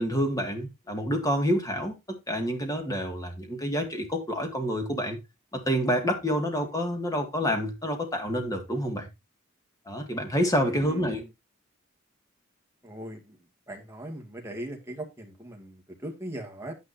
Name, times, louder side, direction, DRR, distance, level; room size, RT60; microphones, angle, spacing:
voice 1, 0.0-5.2 5.5-9.1 9.9-11.2, equal, 15° left, 2.0 m, -28 dB
voice 2, 10.6-11.3 12.8-13.4 13.7-16.7, right 1 dB, 10° right, 2.1 m, -39 dB
9.8 x 9.5 x 2.7 m
head